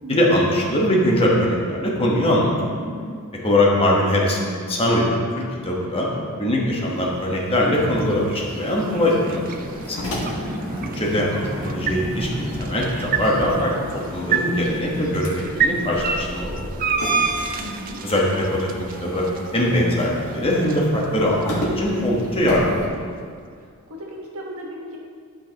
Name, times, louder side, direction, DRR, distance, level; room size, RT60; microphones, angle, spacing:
voice 1, 0.1-2.5 3.4-5.1 5.4-6.1 6.4-9.6 9.9-10.0 10.9-13.7 14.1-16.8 18.0-19.3 19.5-23.0, left 1 dB, 25° left, -3 dB, 1.2 m, -21 dB
voice 2, 2.8-3.2 10.4-10.9 17.6-18.0 23.9-25.0, equal, 70° right, -1 dB, 1.3 m, -36 dB
sound 1, 6.7-22.9, equal, 75° left, 1.7 m, -35 dB
sound 2, 6.8-23.0, right 5 dB, 40° right, 0.4 m, -31 dB
sound 3, 8.6-14.4, equal, 15° right, 1.4 m, -33 dB
11.0 x 5.5 x 3.0 m, 2.1 s
head